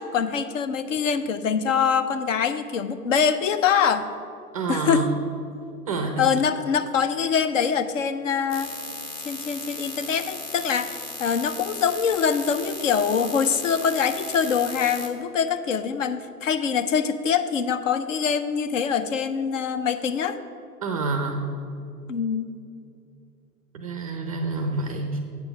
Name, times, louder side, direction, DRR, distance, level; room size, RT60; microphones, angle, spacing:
voice 1, 0.0-4.1 4.7-5.1 6.2-8.7 9.2-20.4 22.1-22.5, left 7 dB, 55° left, 11 dB, 0.6 m, -24 dB
voice 2, 4.5-5.0 5.9-6.2 20.8-21.5 23.7-25.2, right 3 dB, 25° right, 5 dB, 0.4 m, -27 dB
sound 1, 8.5-15.1, left 2 dB, 20° left, 0.7 m, -36 dB
7.9 x 6.9 x 5.7 m, 2.5 s
hypercardioid pair, 125°, 48 cm